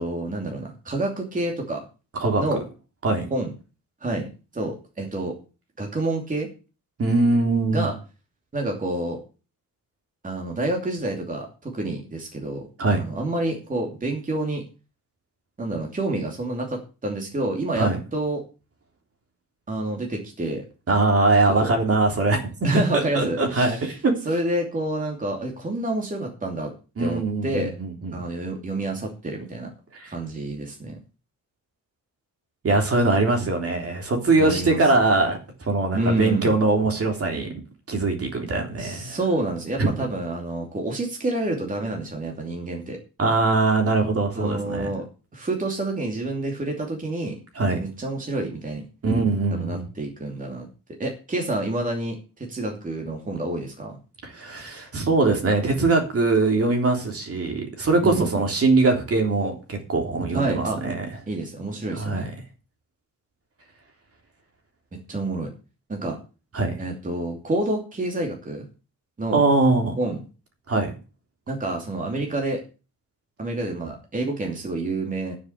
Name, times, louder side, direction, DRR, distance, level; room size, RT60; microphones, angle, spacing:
voice 1, 0.0-1.8 2.4-2.6 3.3-3.5 4.0-4.3 4.5-5.3 5.8-6.5 7.7-7.9 8.5-9.2 10.2-12.6 12.9-14.6 15.6-18.4 19.7-20.6 22.6-23.8 24.2-26.7 27.0-27.7 28.1-29.7 30.1-31.0 34.4-34.8 35.9-36.6 38.8-43.0 44.3-45.1 45.3-47.4 47.7-48.9 49.5-50.7 51.0-54.0 58.0-58.3 60.3-60.8 61.3-62.3 64.9-65.5 65.9-66.2 66.8-68.7 69.2-69.4 70.0-70.2 71.5-72.6 73.4-75.3, right 2 dB, 25° right, 1 dB, 2.8 m, -28 dB
voice 2, 7.0-7.9 12.8-13.0 17.8-18.0 20.9-22.5 22.9-24.1 27.0-28.2 29.9-30.1 32.6-37.5 37.9-39.2 39.8-40.1 43.2-44.9 47.6-47.8 49.0-49.9 54.2-61.1 61.9-62.3 66.5-66.7 69.3-69.9 70.7-70.9, right 3 dB, 45° right, 3 dB, 3.5 m, -22 dB
9.5 x 7.3 x 8.1 m, 0.33 s
wide cardioid pair, 150°, 34 cm